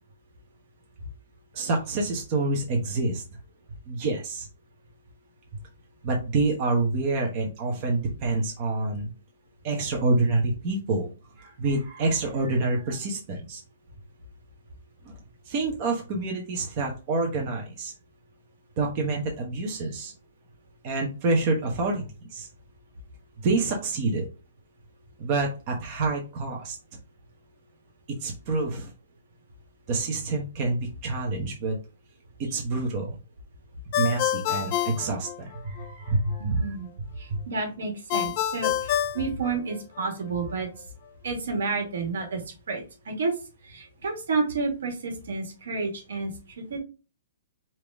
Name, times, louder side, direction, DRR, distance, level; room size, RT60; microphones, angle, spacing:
voice 1, 1.5-3.2 3.9-4.5 6.0-9.1 9.6-11.1 11.4-13.6 15.0-15.2 15.5-17.9 18.8-20.1 20.8-22.0 22.3-22.5 23.4-24.3 25.2-26.8 28.2-28.9 29.9-31.8 32.4-33.1 34.0-36.8 37.3-37.4, right 3 dB, 35° right, 0 dB, 1.0 m, -27 dB
Ringtone, 33.9-35.9 38.1-40.1, left 11 dB, 35° left, 0.4 m, -27 dB
voice 2, 36.4-36.9 37.2-40.7 41.2-42.4 42.7-43.3 43.6-46.3 46.7-46.8, right 4 dB, 80° right, 3 dB, 2.0 m, -30 dB
5.2 x 2.9 x 3.6 m, 0.32 s
hypercardioid pair, 165°, 0 cm